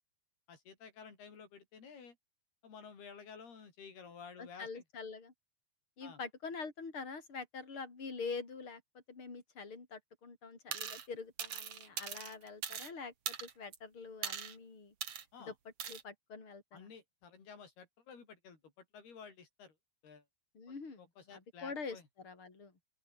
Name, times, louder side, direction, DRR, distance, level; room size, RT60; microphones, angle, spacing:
voice 1, 0.5-2.2 2.6-4.8 6.0-6.2 15.3-15.5 16.7-19.8 20.0-20.3 20.7-22.1, left 6 dB, 80° left, 7.0 m, -53 dB
voice 2, 4.4-5.3 6.0-8.8 9.1-14.9 15.4-15.5 15.9-16.9 20.5-21.0 21.3-22.7, left 4 dB, 30° left, 5.8 m, -45 dB
sound 1, 10.7-11.1 11.4-12.9 13.3-13.8 14.2-14.5 15.0-15.2 15.8-16.0, right 8 dB, 45° right, 2.5 m, -41 dB
open air
omnidirectional pair, 4.5 m